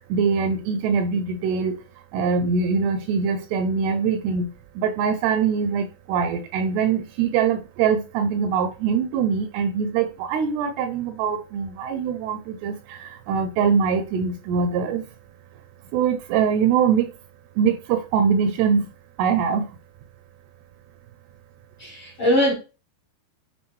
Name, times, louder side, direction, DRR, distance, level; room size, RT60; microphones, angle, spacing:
voice 1, 0.1-1.8 2.1-4.5 4.8-15.0 15.9-17.1 17.6-18.9 19.2-19.7, right 6 dB, 80° right, 2.5 m, -23 dB
voice 2, 21.8-22.5, left 1 dB, 55° left, 1.4 m, -21 dB
9.5 x 3.6 x 3.1 m
omnidirectional pair, 5.0 m